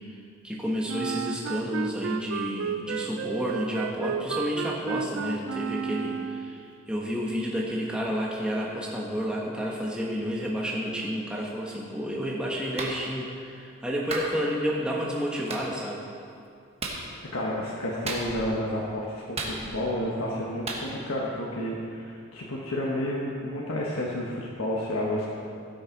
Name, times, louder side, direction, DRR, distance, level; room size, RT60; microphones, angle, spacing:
voice 1, 0.4-16.0, equal, 5° right, -3 dB, 1.1 m, -30 dB
Wind instrument woodwind instrument, 0.9-6.6, right 6 dB, 70° right, 0.4 m, -32 dB
Clapping, 12.8-13.0 14.1-14.3 15.5-15.6 16.8-17.0 18.1-18.5 19.4-19.9 20.7-20.8, right 3 dB, 30° right, 1.3 m, -33 dB
voice 2, 17.3-25.3, left 1 dB, 85° left, -4 dB, 1.3 m, -30 dB
16.0 x 6.5 x 4.6 m, 2.4 s
head